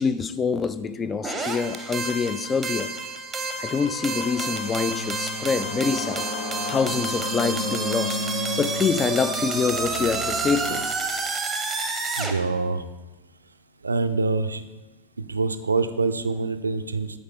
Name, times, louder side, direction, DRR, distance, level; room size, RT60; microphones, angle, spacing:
voice 1, 0.0-2.9 3.6-6.2 6.7-8.2 8.6-10.9, left 5 dB, 20° left, 0.3 m, -26 dB
sound 1, 1.2-12.3, right 3 dB, 15° right, 0.8 m, -29 dB
sound 2, 3.5-11.3, left 3 dB, 45° left, 1.1 m, -36 dB
sound 3, 4.4-10.8, left 3 dB, 65° left, 0.9 m, -37 dB
voice 2, 12.2-12.8 13.8-14.6 15.2-17.2, right 3 dB, 75° right, 0.4 m, -25 dB
8.3 x 4.8 x 3.7 m
figure-of-eight pair, 90°, 0 cm